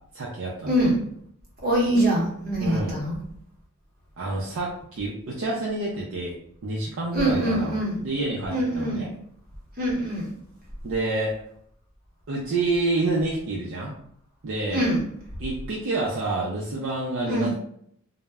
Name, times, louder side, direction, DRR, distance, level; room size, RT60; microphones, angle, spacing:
voice 1, 0.1-0.7 2.6-3.0 4.2-6.4 6.6-7.8 8.0-9.1 10.8-11.4 12.3-13.9 14.4-14.8 15.4-17.5, right 2 dB, 60° right, -4 dB, 0.4 m, -28 dB
voice 2, 0.7-1.1 1.6-3.2 7.1-8.0 8.5-9.1 9.8-10.3 14.7-15.1 17.2-17.5, right 1 dB, 40° right, -4 dB, 0.9 m, -24 dB
2.1 x 2.0 x 3.4 m, 0.68 s
head